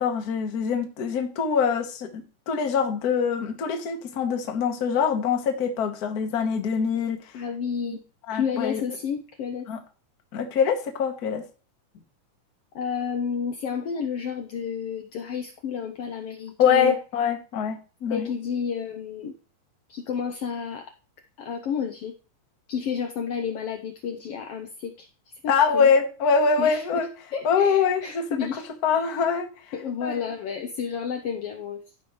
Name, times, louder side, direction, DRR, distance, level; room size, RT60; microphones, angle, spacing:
voice 1, 0.0-7.2 7.9-8.0 8.3-8.8 9.7-9.8 10.3-11.4 16.6-18.3 25.5-27.1 27.4-28.4 28.8-29.5 30.0-30.2, left 6 dB, 55° left, 5 dB, 1.0 m, -24 dB
voice 2, 7.3-8.0 8.3-9.7 12.7-17.0 18.1-19.3 19.9-20.9 21.4-22.1 22.7-25.1 25.4-25.9 26.6-27.0 27.3-28.6 29.7-31.8, left 7 dB, 85° left, 5 dB, 1.3 m, -31 dB
14.5 x 5.4 x 3.1 m, 0.35 s
omnidirectional pair, 3.6 m